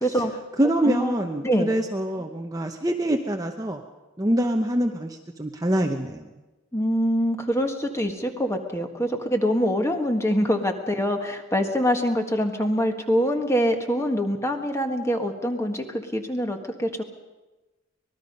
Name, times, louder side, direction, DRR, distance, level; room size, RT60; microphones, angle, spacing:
voice 1, 0.0-0.3 0.8-1.2 1.4-1.7 6.7-17.0, equal, 15° left, 5 dB, 1.5 m, -24 dB
voice 2, 0.6-3.8 4.2-6.3, right 1 dB, 15° right, 3 dB, 0.8 m, -25 dB
25.0 x 20.0 x 5.4 m, 1.1 s
head